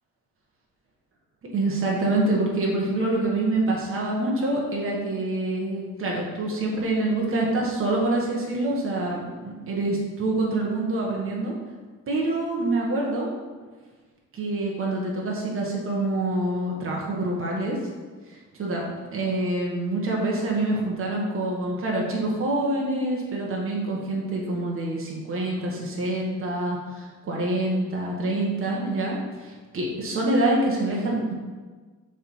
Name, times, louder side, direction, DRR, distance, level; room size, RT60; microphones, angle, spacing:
voice 1, 1.5-11.5 12.1-13.3 14.3-17.8 18.3-31.3, right 2 dB, 45° right, -3 dB, 1.4 m, -26 dB
6.6 x 3.7 x 4.6 m, 1.4 s
cardioid pair, 90°, 30 cm